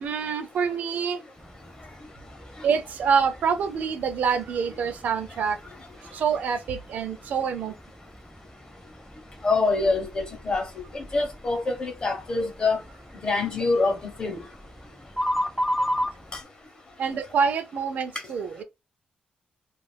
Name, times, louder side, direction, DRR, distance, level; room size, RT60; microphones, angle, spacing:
voice 1, 0.0-1.2 2.6-5.6 6.0-7.7 17.0-18.6, right 6 dB, 60° right, 0.5 m, -26 dB
sound 1, 1.4-16.4, equal, ahead, 0.3 m, -36 dB
voice 2, 9.4-12.8 13.2-14.4 16.3-16.4, left 3 dB, 30° left, 0.9 m, -25 dB
2.4 x 2.3 x 3.3 m
cardioid pair, 145°, 3 cm